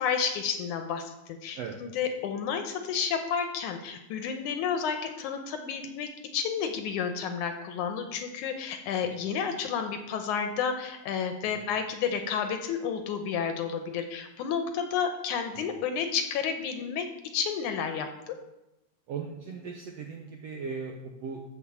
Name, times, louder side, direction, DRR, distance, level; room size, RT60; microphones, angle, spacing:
voice 1, 0.0-1.6 2.0-17.1 17.3-18.4, left 7 dB, 75° left, 7 dB, 2.0 m, -31 dB
voice 2, 19.1-21.4, right 5 dB, 75° right, 2 dB, 1.5 m, -38 dB
13.0 x 4.6 x 7.2 m, 0.92 s
omnidirectional pair, 3.9 m